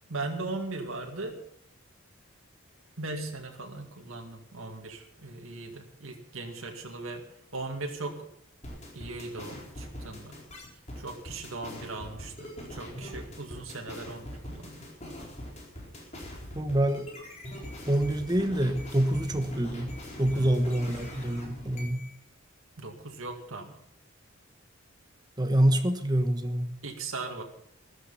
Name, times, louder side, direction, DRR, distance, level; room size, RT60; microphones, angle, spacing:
voice 1, 0.1-1.4 3.0-7.2 7.5-8.3 8.9-10.4 11.0-14.8 20.3-20.8 22.8-23.8 26.8-27.4, right 3 dB, 75° right, 2 dB, 2.3 m, -38 dB
sound 1, 8.6-22.2, left 1 dB, 35° left, 4.4 m, -42 dB
voice 2, 16.5-17.1 17.9-22.1 25.4-26.7, right 1 dB, 20° right, 8 dB, 1.3 m, -26 dB
14.0 x 13.0 x 5.7 m, 0.69 s
head